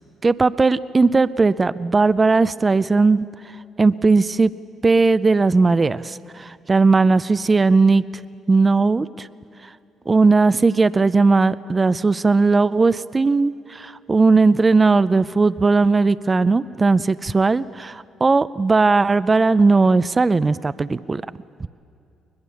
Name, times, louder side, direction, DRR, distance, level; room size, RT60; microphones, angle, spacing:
voice 1, 0.2-3.3 3.8-4.5 4.8-8.0 8.5-9.3 10.1-21.2 21.6-21.7, right 3 dB, 25° right, 16 dB, 0.4 m, -17 dB
21.5 x 21.0 x 7.0 m, 2.5 s
cardioid pair, 80°, 0 cm